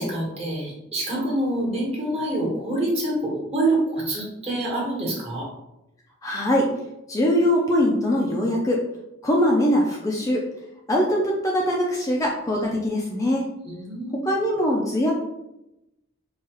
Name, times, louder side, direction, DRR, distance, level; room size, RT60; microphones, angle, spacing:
voice 1, 0.0-5.5 13.6-14.3, right 1 dB, 30° right, -4 dB, 1.3 m, -26 dB
voice 2, 6.2-6.7 7.1-8.8 9.2-10.5 10.9-13.5 14.1-15.1, left 1 dB, 15° left, -2 dB, 0.4 m, -22 dB
4.6 x 2.3 x 2.9 m, 0.88 s
head